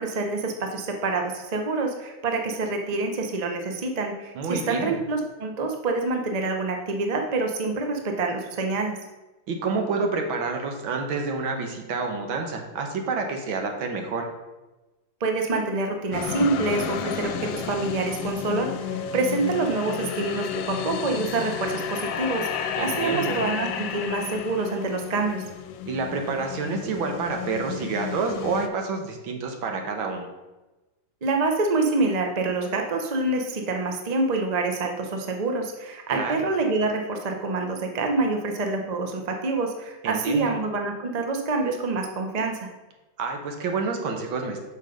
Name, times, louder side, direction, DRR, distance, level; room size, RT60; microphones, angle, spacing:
voice 1, 0.0-9.0 15.2-18.7 19.1-25.4 31.2-42.7, right 3 dB, 50° right, 4 dB, 0.4 m, -26 dB
voice 2, 4.4-5.0 9.5-14.3 22.8-23.4 25.9-30.3 36.1-36.5 40.0-40.5 43.2-44.6, right 4 dB, 80° right, 3 dB, 1.8 m, -28 dB
sound 1, 16.1-28.7, left 7 dB, 75° left, 1.3 m, -32 dB
6.4 x 5.5 x 5.2 m, 1.1 s
omnidirectional pair, 2.2 m